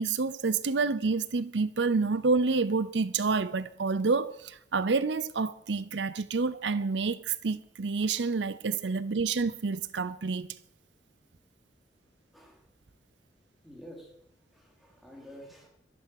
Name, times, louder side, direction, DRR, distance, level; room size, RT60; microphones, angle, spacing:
voice 1, 0.0-10.6, right 4 dB, 85° right, 0.7 m, -28 dB
voice 2, 12.3-12.6 13.6-14.1 14.5-15.7, equal, ahead, 4.5 m, -49 dB
15.0 x 13.0 x 6.6 m
head